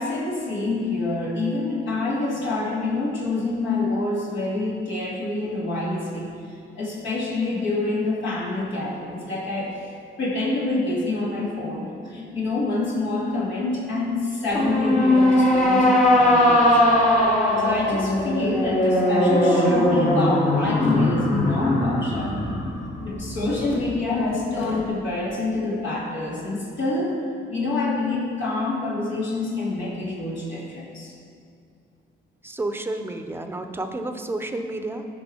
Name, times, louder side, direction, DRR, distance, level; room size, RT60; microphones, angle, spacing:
voice 1, 0.0-6.3 6.7-9.7 10.2-17.1 17.6-22.5 23.0-27.1 27.5-31.1, left 2 dB, 70° left, -6 dB, 2.5 m, -27 dB
sound 1, 14.5-23.9, left 1 dB, 35° left, 2.0 m, -20 dB
voice 2, 32.4-35.1, right 2 dB, 10° right, 6 dB, 0.8 m, -30 dB
13.5 x 5.2 x 4.5 m, 2.3 s
cardioid pair, 90°, 20 cm